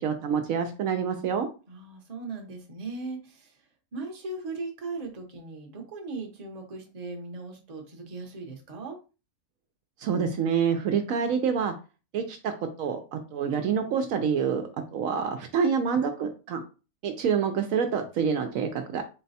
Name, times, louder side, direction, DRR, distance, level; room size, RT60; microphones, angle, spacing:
voice 1, 0.0-1.5 10.0-11.7 12.1-12.5 12.8-16.6 17.0-19.0, right 6 dB, 70° right, 6 dB, 0.9 m, -27 dB
voice 2, 1.7-3.5 3.9-9.0, right 3 dB, 35° right, 2 dB, 0.8 m, -38 dB
3.9 x 2.2 x 4.0 m, 0.32 s
omnidirectional pair, 1.5 m